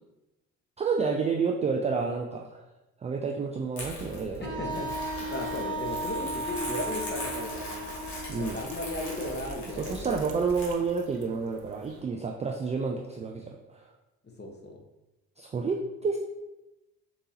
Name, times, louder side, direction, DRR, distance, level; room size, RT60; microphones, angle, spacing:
voice 1, 0.8-2.7 3.0-4.6 8.3-8.6 9.7-13.8 15.4-16.2, right 5 dB, 15° right, 2 dB, 0.3 m, -30 dB
Crumpling crinkling, 3.7-10.7, left 2 dB, 70° left, 1.5 m, -40 dB
voice 2, 4.4-7.8 8.3-10.2 14.4-14.8, left 1 dB, 25° left, 1 dB, 1.1 m, -36 dB
Wind instrument woodwind instrument, 4.4-10.2, right 2 dB, 35° right, 1.2 m, -36 dB
sound 1, 6.8-12.0, right 6 dB, 80° right, 0.6 m, -50 dB
6.8 x 2.7 x 2.8 m, 0.98 s
figure-of-eight pair, 50°, 42 cm